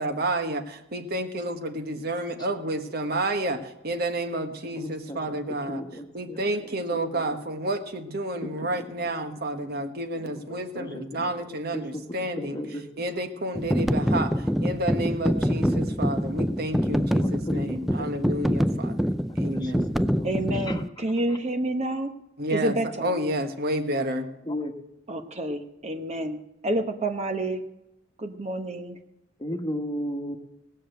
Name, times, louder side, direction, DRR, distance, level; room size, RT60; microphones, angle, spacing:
voice 1, 0.0-5.8 6.1-12.6 13.0-14.3 14.6-19.1 19.4-20.0 22.4-24.3, right 1 dB, 55° right, 6 dB, 1.4 m, -30 dB
voice 2, 4.8-5.4 5.7-6.8 7.1-7.4 8.4-9.1 9.6-9.7 10.1-13.0 16.9-18.1 18.7-19.0 19.3-19.8 20.1-20.3 20.6-21.4 24.4-24.7 29.4-30.4, equal, 20° left, 4 dB, 1.3 m, -36 dB
sound 1, 13.5-20.9, equal, ahead, 0.4 m, -25 dB
voice 3, 20.2-22.1 22.5-23.2 25.1-27.6 28.2-29.0, right 1 dB, 35° right, 5 dB, 1.0 m, -29 dB
19.0 x 6.7 x 7.9 m, 0.86 s
head